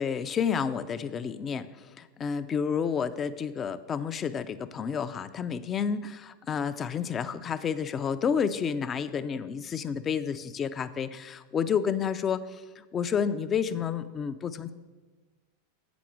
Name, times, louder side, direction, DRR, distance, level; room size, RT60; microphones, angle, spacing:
voice 1, 0.0-14.7, left 7 dB, 30° left, 12 dB, 0.5 m, -30 dB
8.3 x 6.1 x 6.1 m, 1.3 s
hypercardioid pair, 90°, 0 cm